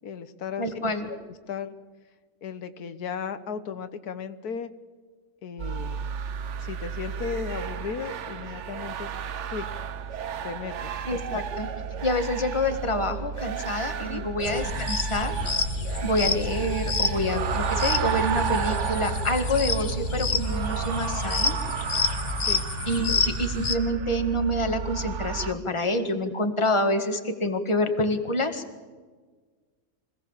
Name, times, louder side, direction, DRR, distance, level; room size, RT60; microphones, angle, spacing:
voice 1, 0.0-0.7 1.2-1.7 2.4-4.7 5.4-6.1 6.6-9.1 9.5-9.7 10.4-11.0 14.0-14.3 22.4-22.6, left 6 dB, 85° left, 11 dB, 1.6 m, -35 dB
voice 2, 0.6-1.1 11.0-11.7 12.0-15.3 16.0-21.6 22.9-28.6, left 1 dB, 20° left, 6 dB, 1.8 m, -27 dB
sound 1, 5.6-25.5, right 6 dB, 55° right, 1.1 m, -32 dB
sound 2, 14.4-23.7, left 4 dB, 35° left, 1.3 m, -29 dB
25.5 x 17.5 x 7.4 m, 1.4 s
omnidirectional pair, 1.6 m